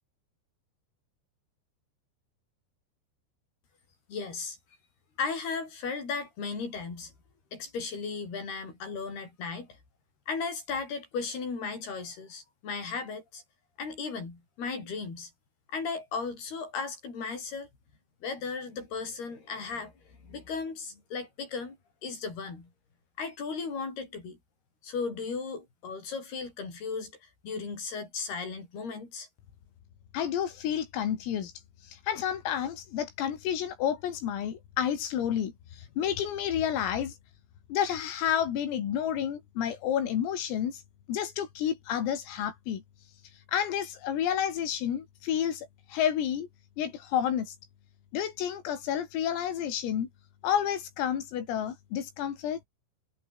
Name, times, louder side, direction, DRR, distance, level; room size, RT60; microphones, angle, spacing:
voice 1, 4.1-4.6 5.2-7.1 7.5-9.7 10.3-13.4 13.8-15.3 15.7-17.7 18.2-19.9 20.3-21.8 22.0-22.7 23.2-24.4 24.8-27.1 27.4-29.3, left 5 dB, 50° left, 9.6 m, -36 dB
voice 2, 30.1-31.5 31.8-37.2 37.7-40.8 41.1-42.8 43.5-46.5 46.8-47.6 48.1-50.1 50.4-52.6, left 9 dB, 90° left, 6.0 m, -30 dB
omnidirectional pair, 5.8 m